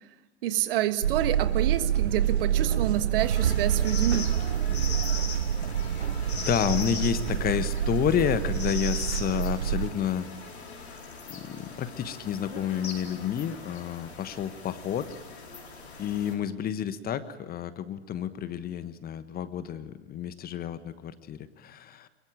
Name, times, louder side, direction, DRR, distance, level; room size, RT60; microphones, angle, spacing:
voice 1, 0.4-4.3, right 12 dB, 60° right, 11 dB, 1.5 m, -28 dB
sound 1, 1.0-9.9, right 10 dB, 80° right, 0.8 m, -27 dB
sound 2, 3.2-16.3, left 4 dB, 80° left, 4.7 m, -40 dB
sound 3, 5.7-13.7, left 8 dB, 60° left, 5.4 m, -57 dB
voice 2, 6.3-10.3 11.3-15.1 16.0-22.1, left 9 dB, 30° left, 13 dB, 1.3 m, -30 dB
22.5 x 22.0 x 8.9 m, 1.2 s
figure-of-eight pair, 90°, 32 cm